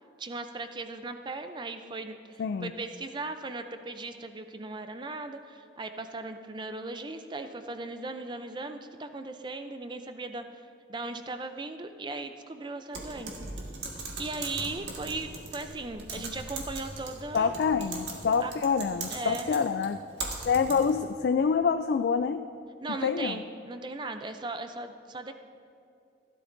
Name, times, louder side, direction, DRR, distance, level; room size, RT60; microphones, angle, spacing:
voice 1, 0.2-10.6 10.9-13.4 14.2-17.5 18.4-18.5 19.1-19.7 22.8-25.3, right 3 dB, 25° right, 8 dB, 0.5 m, -38 dB
voice 2, 2.4-2.7 16.2-16.3 17.3-20.0 20.5-22.4 23.0-23.4, left 6 dB, 70° left, 9 dB, 0.3 m, -26 dB
Typing, 12.9-21.1, right 3 dB, 85° right, 1.6 m, -40 dB
16.0 x 11.5 x 2.6 m, 2.5 s
head